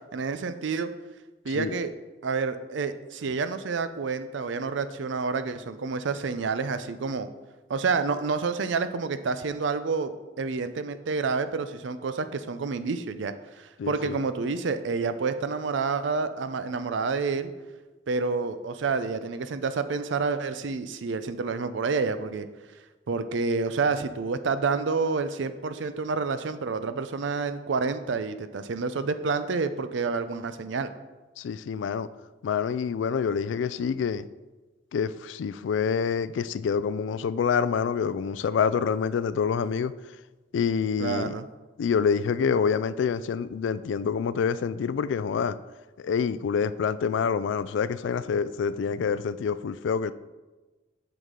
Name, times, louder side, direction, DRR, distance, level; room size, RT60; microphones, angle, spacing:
voice 1, 0.1-0.9 1.4-1.9 2.2-7.3 7.7-10.1 10.4-17.5 18.1-22.5 23.1-30.9 41.0-41.5, right 4 dB, 75° right, 11 dB, 0.5 m, -29 dB
voice 2, 13.8-14.2 31.4-32.1 32.4-34.2 34.9-39.9 40.5-41.3 41.8-45.6 46.0-50.1, left 6 dB, 70° left, 15 dB, 0.3 m, -27 dB
8.1 x 5.9 x 3.7 m, 1.2 s
head